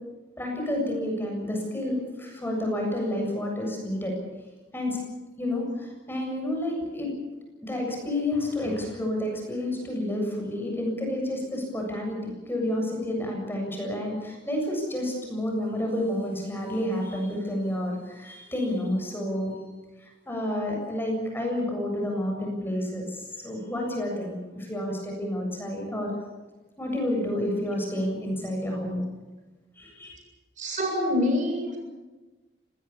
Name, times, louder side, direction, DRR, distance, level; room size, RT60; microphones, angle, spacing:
voice 1, 0.4-4.1 4.7-5.0 5.4-7.1 7.6-19.5 20.0-26.1 26.8-29.0 29.8-30.2, left 1 dB, 10° left, 1 dB, 7.5 m, -30 dB
voice 2, 30.6-31.8, left 1 dB, 45° right, 2 dB, 7.6 m, -26 dB
25.5 x 20.0 x 7.1 m, 1.2 s
head